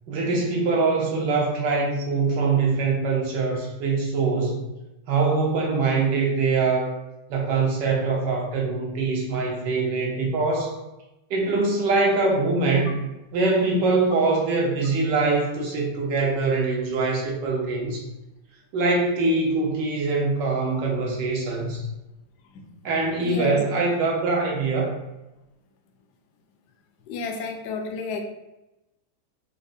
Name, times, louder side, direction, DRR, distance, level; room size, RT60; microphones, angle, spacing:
voice 1, 0.1-4.6 5.1-6.9 7.3-10.8 11.3-13.0 13.3-18.1 18.7-21.8 22.8-24.9, right 3 dB, 80° right, -1 dB, 1.5 m, -23 dB
voice 2, 23.2-23.6 27.1-28.2, left 4 dB, 75° left, 3 dB, 1.1 m, -31 dB
5.1 x 2.0 x 2.5 m, 0.96 s
omnidirectional pair, 1.9 m